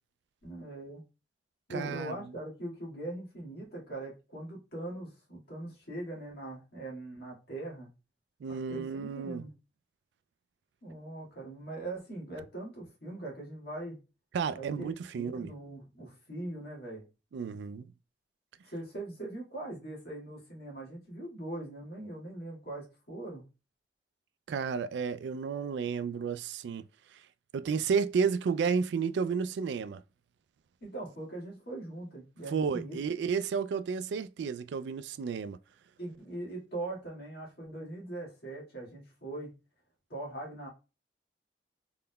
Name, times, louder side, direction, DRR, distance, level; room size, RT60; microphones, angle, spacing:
voice 1, 0.4-1.0 1.7-7.9 8.5-9.5 10.8-14.0 14.5-17.0 18.7-23.5 30.8-33.0 36.0-39.5 40.1-40.7, right 2 dB, 60° left, 1.8 m, -41 dB
voice 2, 1.7-2.3 8.4-9.4 14.3-15.5 17.3-17.9 24.5-26.9 27.1-27.2 27.5-30.0 32.5-35.6, right 6 dB, 70° right, 0.3 m, -32 dB
3.8 x 3.8 x 2.2 m
head